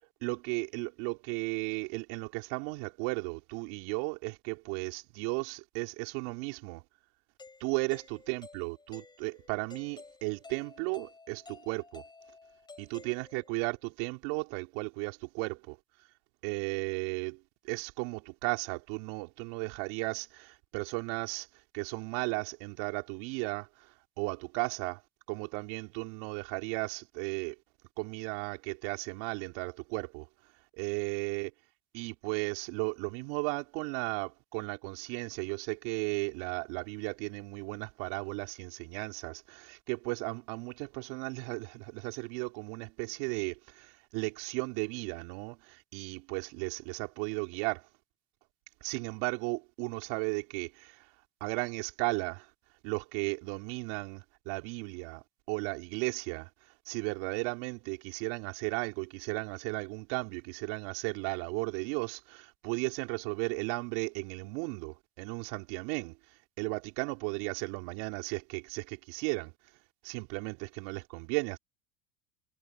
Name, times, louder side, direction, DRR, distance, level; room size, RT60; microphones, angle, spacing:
voice 1, 0.2-6.8 7.6-12.0 12.8-15.8 16.4-17.4 17.6-21.5 21.7-25.0 25.3-27.5 28.0-30.3 30.8-31.5 31.9-47.9 48.8-51.1 51.4-52.5 52.8-56.5 56.9-66.2 66.6-69.5 70.0-71.6, right 30 dB, 70° right, 4.5 m, -35 dB
Doorbell, 7.4-13.7, left 3 dB, 15° left, 6.5 m, -53 dB
supercardioid pair, 110°, 30 cm